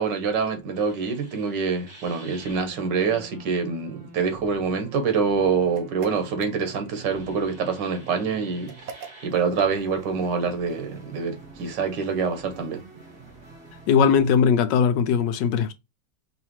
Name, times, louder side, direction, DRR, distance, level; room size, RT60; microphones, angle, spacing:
voice 1, 0.0-8.7 9.2-12.8, right 5 dB, 90° right, 1.6 m, -26 dB
sound 1, 0.7-14.2, right 4 dB, 40° right, 2.2 m, -46 dB
sound 2, 5.7-7.1 8.7-9.5, right 6 dB, 60° right, 0.9 m, -43 dB
voice 2, 13.9-15.7, left 6 dB, 90° left, 1.3 m, -19 dB
4.8 x 2.8 x 3.0 m
omnidirectional pair, 1.9 m